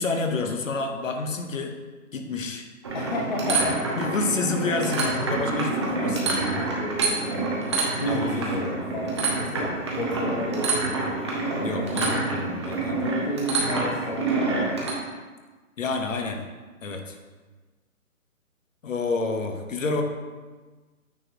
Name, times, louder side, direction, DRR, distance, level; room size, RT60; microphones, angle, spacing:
voice 1, 0.0-1.8 2.1-2.6 4.0-6.7 8.0-9.1 11.6-13.0 15.8-16.4 16.8-17.2 18.8-20.0, left 3 dB, 65° left, 4 dB, 1.1 m, -29 dB
sound 1, 2.8-14.9, right 3 dB, 20° right, 0.6 m, -27 dB
voice 2, 2.9-3.8 6.8-7.7 8.0-11.0 11.6-12.3 12.9-14.9, equal, 30° left, -1 dB, 0.6 m, -32 dB
8.7 x 4.2 x 3.0 m, 1.3 s
hypercardioid pair, 150°, 43 cm